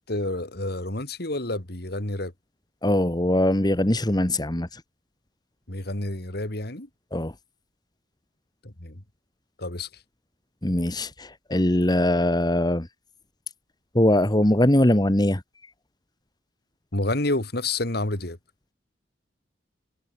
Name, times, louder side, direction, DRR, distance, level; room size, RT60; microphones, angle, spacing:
voice 1, 0.0-2.3 5.7-6.9 8.6-9.0 9.6-9.9 16.9-18.4, left 2 dB, 60° left, 2.9 m, -29 dB
voice 2, 2.8-4.8 7.1-7.3 10.6-12.9 13.9-15.4, left 1 dB, 20° left, 1.7 m, -21 dB
head